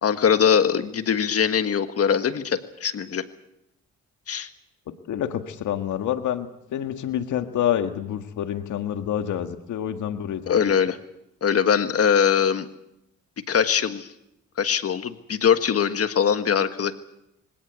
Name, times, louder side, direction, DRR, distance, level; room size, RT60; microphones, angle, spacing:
voice 1, 0.0-3.2 4.3-4.5 10.5-11.0 11.4-12.7 13.5-14.1 14.6-16.9, left 7 dB, 50° left, 10 dB, 1.5 m, -22 dB
voice 2, 5.1-10.6, left 10 dB, 75° left, 8 dB, 1.7 m, -27 dB
25.0 x 17.0 x 8.3 m, 0.83 s
cardioid pair, 90°, 30 cm